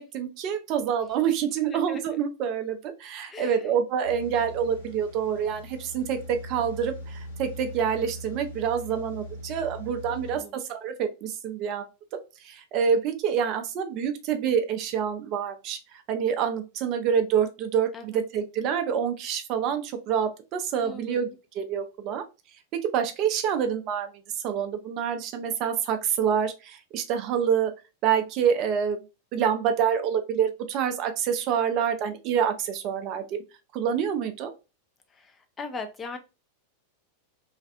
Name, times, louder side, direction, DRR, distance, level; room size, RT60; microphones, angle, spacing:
voice 1, 0.0-11.9 12.1-15.8 16.1-21.3 21.5-22.2 22.7-24.1 24.4-27.7 28.0-29.0 29.3-33.4 33.7-34.5, right 8 dB, 40° right, 7 dB, 0.5 m, -27 dB
voice 2, 3.3-3.7 10.1-10.6 17.9-18.2 20.8-21.4 35.2-35.3 35.6-36.2, left 3 dB, 20° left, 6 dB, 0.5 m, -39 dB
sound 1, 4.0-10.4, equal, 65° left, 1.1 m, -41 dB
2.5 x 2.3 x 2.3 m, 0.28 s
figure-of-eight pair, 90°, 0 cm